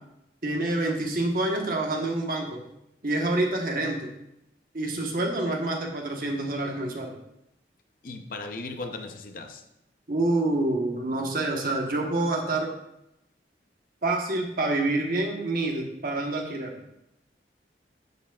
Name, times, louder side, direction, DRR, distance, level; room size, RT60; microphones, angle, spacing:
voice 1, 0.4-2.6 3.0-4.1 4.7-7.2 10.1-12.7 14.0-16.7, right 2 dB, 50° right, 1 dB, 1.2 m, -27 dB
voice 2, 8.0-9.6, left 3 dB, 50° left, 6 dB, 0.7 m, -37 dB
9.7 x 7.2 x 2.4 m, 0.82 s
head